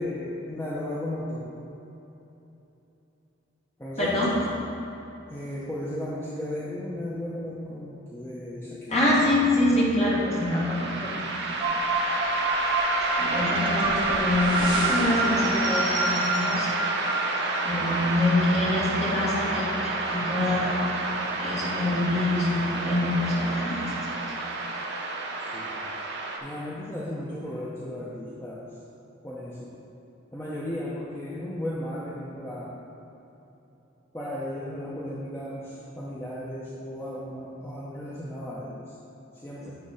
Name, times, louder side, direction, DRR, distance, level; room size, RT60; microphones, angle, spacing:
voice 1, 0.0-1.5 3.8-4.2 5.3-9.0 10.9-11.0 25.5-25.8 26.4-28.7 29.2-29.7 30.3-32.8 34.1-38.8 39.4-39.8, left 1 dB, 10° left, -8 dB, 0.7 m, -35 dB
voice 2, 4.0-4.4 8.9-11.1 12.5-12.7 13.1-16.7 17.6-20.9 21.4-23.8, left 1 dB, 30° left, -6 dB, 1.6 m, -25 dB
sound 1, 10.0-26.4, right 2 dB, 55° right, 0.8 m, -29 dB
sound 2, 11.6-17.7, right 2 dB, 25° right, 1.4 m, -28 dB
9.4 x 3.5 x 5.6 m, 3.0 s
head